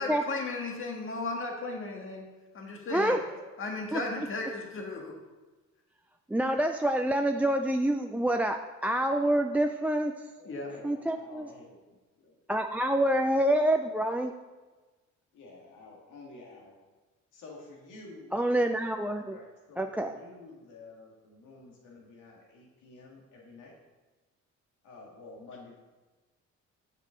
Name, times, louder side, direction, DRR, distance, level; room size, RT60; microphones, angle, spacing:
voice 1, 0.0-2.2 2.5-3.2 3.6-5.1 10.4-10.7, left 3 dB, 45° left, 1 dB, 1.7 m, -35 dB
voice 2, 6.3-10.1 10.8-11.5 12.5-14.3 18.3-19.4 19.8-20.1, right 1 dB, 5° right, 4 dB, 0.3 m, -27 dB
voice 3, 10.4-12.4 15.3-16.8 17.3-18.4 19.2-23.7 24.8-25.8, left 3 dB, 85° left, -1 dB, 2.0 m, -50 dB
7.8 x 6.8 x 3.8 m, 1.2 s
cardioid pair, 90°, 30 cm